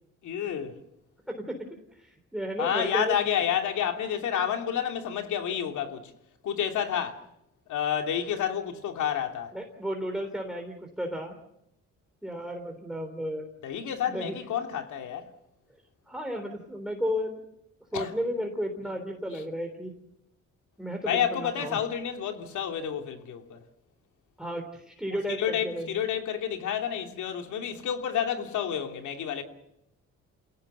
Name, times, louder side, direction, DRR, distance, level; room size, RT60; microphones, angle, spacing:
voice 1, 0.2-0.8 2.6-6.1 6.4-7.2 7.7-9.6 13.6-15.3 17.9-18.1 19.3-19.4 21.1-23.6 25.1-29.4, left 9 dB, 75° left, 2.9 m, -30 dB
voice 2, 2.0-3.1 9.5-11.4 12.2-13.4 14.1-14.3 16.1-17.4 17.9-19.9 20.8-21.8 24.4-25.9, equal, ahead, 3.6 m, -33 dB
29.0 x 17.5 x 6.9 m
cardioid pair, 90°, 30 cm